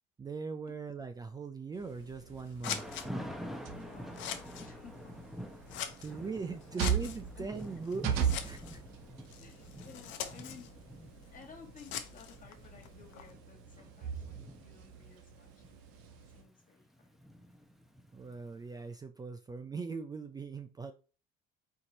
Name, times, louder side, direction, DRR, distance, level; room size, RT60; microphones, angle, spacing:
voice 1, 0.2-2.8 6.0-8.8 13.8-13.9 18.1-20.9, right 4 dB, 20° right, 7 dB, 0.4 m, -40 dB
sound 1, 1.7-16.4, right 8 dB, 80° right, 0.8 m, -40 dB
Scissors, 1.9-13.3, left 9 dB, 65° left, 0.8 m, -45 dB
Thunder / Rain, 2.6-18.7, equal, ahead, 0.8 m, -47 dB
voice 2, 3.7-5.3 5.7-6.9 7.4-7.6 9.4-10.7 11.3-15.8 16.3-17.1, left 6 dB, 40° left, 2 dB, 1.8 m, -56 dB
4.6 x 2.8 x 3.9 m, 0.35 s
supercardioid pair, 90°, 21 cm